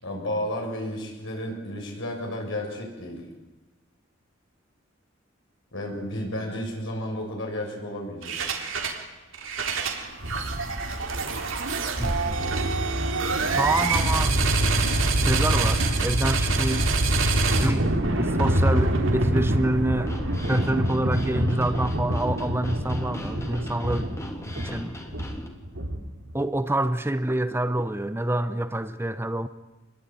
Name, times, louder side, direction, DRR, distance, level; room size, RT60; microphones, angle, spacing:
voice 1, 0.0-3.2 5.7-8.4, left 1 dB, 70° left, 7.2 m, -32 dB
sound 1, 8.2-9.0 9.3-26.3, right 2 dB, 70° right, 3.6 m, -25 dB
voice 2, 12.0-12.4 13.6-14.4 15.1-16.9 17.6-17.9 18.2-20.1 20.5-24.1 24.6-24.9 26.3-29.5, right 1 dB, 10° right, 0.8 m, -27 dB
sound 2, 20.0-25.5, left 1 dB, 15° left, 3.2 m, -39 dB
27.0 x 21.5 x 9.5 m
head